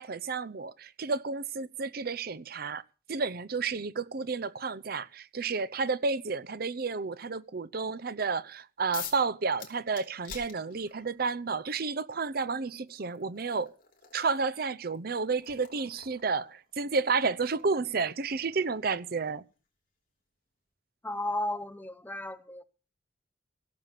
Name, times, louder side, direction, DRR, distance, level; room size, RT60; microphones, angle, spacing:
voice 1, 0.0-2.8 3.1-13.7 14.1-19.4, right 4 dB, 55° right, 0.7 m, -31 dB
sound 1, 8.9-9.3 9.6-11.1 12.3-12.4 12.9-19.5, left 8 dB, 50° left, 3.6 m, -48 dB
voice 2, 21.0-22.6, left 1 dB, 10° left, 0.8 m, -34 dB
17.0 x 7.0 x 7.5 m
head